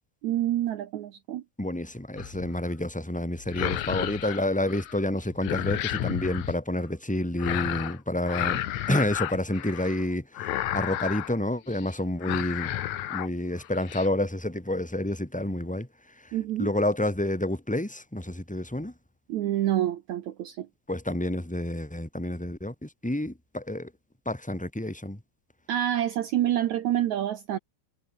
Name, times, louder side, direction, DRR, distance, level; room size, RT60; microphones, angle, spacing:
voice 1, 0.2-1.4 16.3-16.7 19.3-20.7 25.7-27.6, right 12 dB, 70° right, 1.8 m, -27 dB
voice 2, 1.6-8.6 8.9-12.7 13.1-15.9 16.2-18.9 20.9-23.9 24.3-25.2, left 1 dB, 5° left, 1.8 m, -29 dB
sound 1, 2.2-2.6 3.4-5.0 5.2-6.6 7.4-8.0 8.3-10.0 10.3-11.4 11.7-11.9 12.2-13.3 13.6-14.1, left 13 dB, 65° left, 1.9 m, -32 dB
omnidirectional pair, 4.6 m